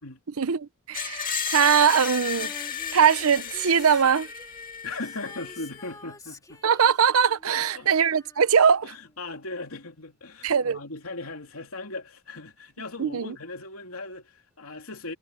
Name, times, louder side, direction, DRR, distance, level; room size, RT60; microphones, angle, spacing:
voice 1, 0.4-2.5 2.9-4.3 6.6-8.9 10.4-10.8 13.0-13.3, right 7 dB, 80° right, 0.7 m, -21 dB
Screech, 0.9-5.9, left 7 dB, 40° left, 2.3 m, -34 dB
Female singing, 2.4-9.3 10.5-10.6, left 2 dB, 15° left, 2.6 m, -49 dB
voice 2, 4.8-6.6 7.5-7.9 8.8-15.1, left 2 dB, 80° left, 3.1 m, -38 dB
head